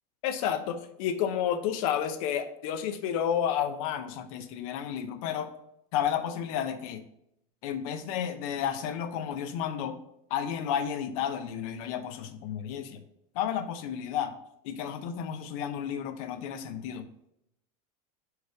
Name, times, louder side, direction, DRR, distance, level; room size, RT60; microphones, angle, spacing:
voice 1, 0.2-5.5 5.9-7.0 7.6-10.0 10.3-13.0 13.3-14.3 14.6-17.1, left 9 dB, 65° left, 10 dB, 0.7 m, -31 dB
4.9 x 4.7 x 4.6 m, 0.80 s
supercardioid pair, 160°, 19 cm